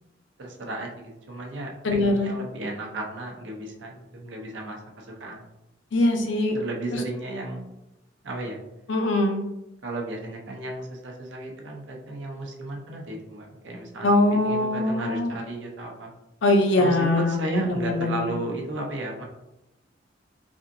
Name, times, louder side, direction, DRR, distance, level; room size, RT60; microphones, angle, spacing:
voice 1, 0.4-5.4 6.5-7.8 8.2-8.6 9.8-14.1 14.4-16.1 16.8-19.2, right 1 dB, 75° right, 0 dB, 0.7 m, -34 dB
voice 2, 1.8-2.4 5.9-6.6 6.9-7.0 8.9-9.4 14.0-15.3 16.4-18.3, left 2 dB, 85° left, 3 dB, 0.6 m, -22 dB
3.4 x 2.6 x 2.6 m, 0.93 s
head